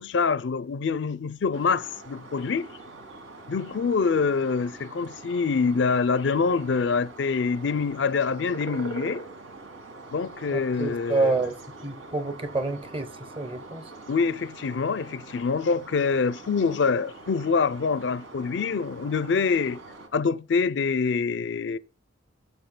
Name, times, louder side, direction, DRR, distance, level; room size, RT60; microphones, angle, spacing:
voice 1, 0.0-2.7 3.5-9.2 10.1-11.4 14.1-19.8 20.1-21.8, left 5 dB, 65° left, 0.4 m, -25 dB
sound 1, 1.5-20.1, right 3 dB, 85° right, 1.7 m, -44 dB
voice 2, 10.5-11.6 11.8-13.8, right 3 dB, 25° right, 0.8 m, -28 dB
17.0 x 7.1 x 2.2 m
head